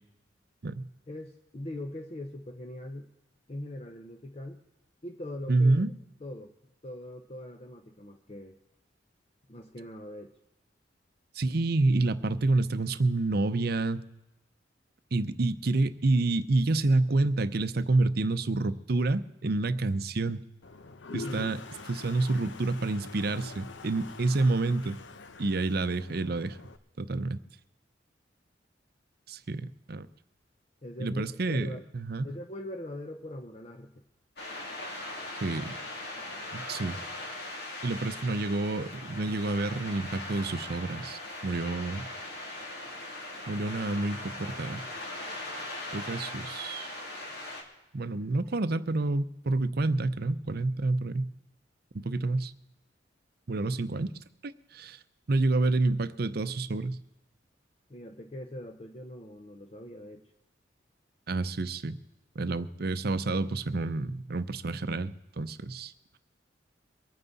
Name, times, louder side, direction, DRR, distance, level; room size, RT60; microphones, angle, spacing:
voice 1, 1.1-3.1 3.5-4.6 5.0-5.8 6.2-6.5 6.8-8.6 9.5-10.3 21.2-21.6 30.8-31.9 32.2-34.0 57.9-60.3, left 1 dB, 35° left, 5 dB, 0.7 m, -41 dB
voice 2, 5.5-5.9 11.3-14.0 15.1-20.4 21.1-21.6 21.9-25.0 25.4-26.6 27.0-27.4 29.3-30.1 31.0-32.3 35.3-35.8 36.5-37.0 37.8-42.1 43.5-44.8 45.9-46.9 47.9-51.3 51.9-52.5 53.5-54.1 54.4-55.0 55.3-57.0 61.3-62.0 62.4-65.9, right 2 dB, 55° right, 13 dB, 0.6 m, -28 dB
Toilet flush, 20.6-26.8, left 4 dB, 85° left, 0.8 m, -45 dB
sound 1, 34.4-47.6, left 1 dB, 60° left, 2.6 m, -40 dB
23.5 x 9.4 x 4.1 m, 0.93 s
head